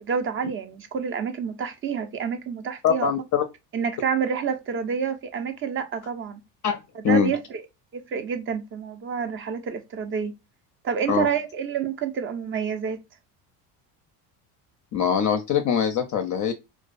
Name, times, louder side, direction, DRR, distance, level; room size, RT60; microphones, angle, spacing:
voice 1, 0.0-3.1 3.7-6.4 7.0-7.6 7.9-10.3 10.8-13.0, right 7 dB, 25° right, 0.4 m, -28 dB
voice 2, 2.8-3.4 6.6-6.8 7.0-7.3 11.1-11.3 14.9-16.5, left 7 dB, 40° left, 0.4 m, -22 dB
2.3 x 2.2 x 2.3 m
hypercardioid pair, 80°, 49 cm